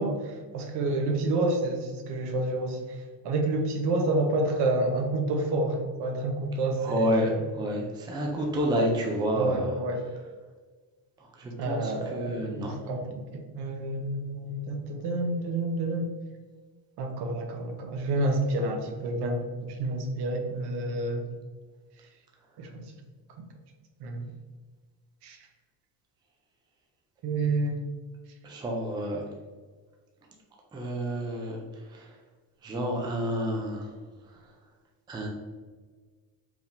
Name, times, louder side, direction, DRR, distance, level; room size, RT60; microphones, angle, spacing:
voice 1, 0.0-7.4 9.3-10.0 11.6-16.1 17.0-21.3 22.6-22.9 23.4-23.5 24.0-24.3 25.2-25.5 27.2-27.8, right 2 dB, 65° right, 3 dB, 0.9 m, -29 dB
voice 2, 6.8-7.3 7.6-9.7 11.4-12.7 28.4-29.2 30.7-31.6 31.9-32.0 32.6-33.9 35.1-35.3, equal, 10° right, 0 dB, 0.4 m, -29 dB
4.9 x 3.4 x 2.6 m, 1.4 s
cardioid pair, 150°, 43 cm